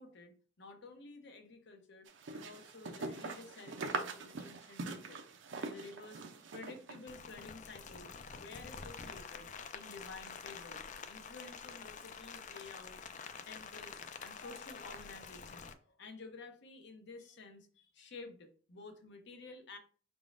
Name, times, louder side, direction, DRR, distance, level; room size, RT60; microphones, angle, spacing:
voice 1, 0.0-5.2 5.6-6.2 6.5-8.1 8.3-13.1 13.5-19.8, left 3 dB, 60° left, 6 dB, 0.8 m, -52 dB
sound 1, 2.1-7.1, right 3 dB, 65° right, 0.6 m, -42 dB
Rain, 7.1-15.7, left 5 dB, 40° left, 0.4 m, -48 dB
5.0 x 3.6 x 2.5 m, 0.40 s
head